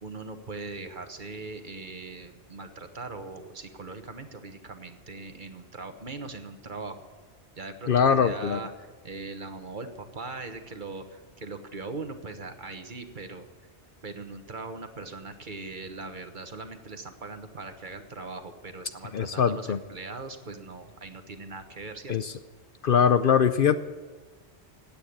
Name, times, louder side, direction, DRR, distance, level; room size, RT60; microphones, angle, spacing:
voice 1, 0.0-7.0 7.6-13.5 14.0-22.3, right 3 dB, 45° right, 8 dB, 1.3 m, -40 dB
voice 2, 7.9-8.6 19.1-19.8 22.1-22.3 22.8-23.8, left 7 dB, 60° left, 11 dB, 0.7 m, -22 dB
16.5 x 8.9 x 8.5 m, 1.3 s
omnidirectional pair, 1.1 m